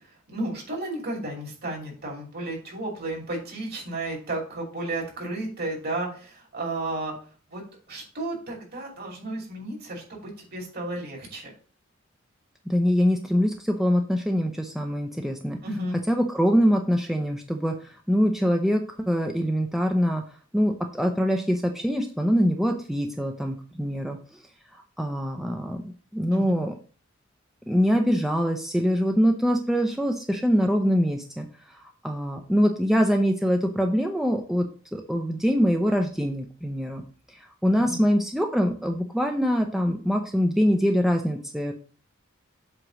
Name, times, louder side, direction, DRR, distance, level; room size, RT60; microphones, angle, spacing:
voice 1, 0.3-7.1 7.5-7.6 7.9-11.5 15.6-16.0 26.3-26.6 37.8-38.0, right 2 dB, 50° right, -1 dB, 2.8 m, -33 dB
voice 2, 12.7-15.6 16.1-20.2 20.5-24.2 24.7-25.8 26.1-26.7 27.7-34.7 34.9-37.0 37.3-41.7, equal, ahead, 3 dB, 0.5 m, -24 dB
7.8 x 3.0 x 6.1 m, 0.41 s
head